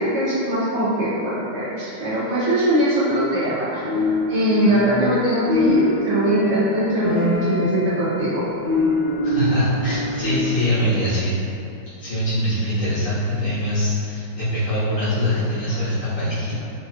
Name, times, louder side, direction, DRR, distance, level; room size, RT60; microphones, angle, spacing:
voice 1, 0.0-3.8 4.3-8.4 15.7-15.8, right 1 dB, 80° right, -10 dB, 0.6 m, -21 dB
sound 1, 3.8-5.2 5.4-10.7, left 2 dB, 70° left, 0.7 m, -24 dB
voice 2, 9.2-11.3 12.0-16.5, left 1 dB, 85° left, -14 dB, 2.2 m, -23 dB
4.5 x 2.7 x 2.3 m, 2.8 s
omnidirectional pair, 2.0 m